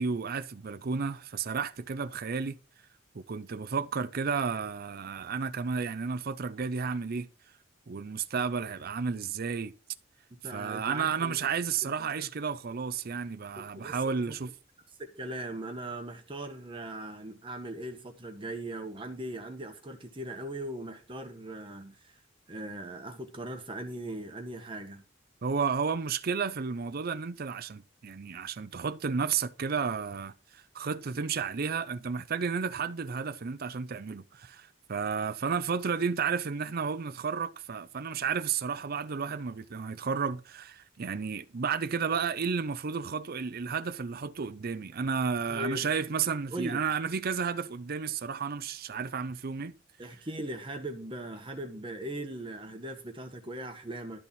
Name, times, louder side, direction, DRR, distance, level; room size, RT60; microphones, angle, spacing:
voice 1, 0.0-2.6 3.1-7.3 7.9-9.7 10.5-14.5 25.4-49.7, right 5 dB, 50° right, 0.5 m, -32 dB
voice 2, 10.4-11.5 11.8-12.3 13.5-14.4 15.0-22.2 22.5-25.0 45.5-45.9 46.5-46.8 50.0-54.2, right 1 dB, 25° right, 1.2 m, -39 dB
12.0 x 4.1 x 7.2 m
head